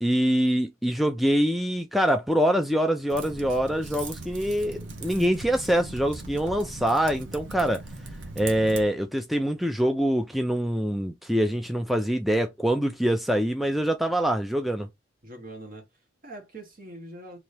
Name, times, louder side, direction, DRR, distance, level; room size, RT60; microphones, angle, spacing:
voice 1, 0.0-7.8 8.4-14.9, equal, ahead, 0.3 m, -24 dB
Typing, 3.1-8.8, right 3 dB, 85° right, 0.9 m, -39 dB
voice 2, 15.2-17.4, right 1 dB, 50° right, 1.5 m, -43 dB
2.9 x 2.8 x 3.2 m
head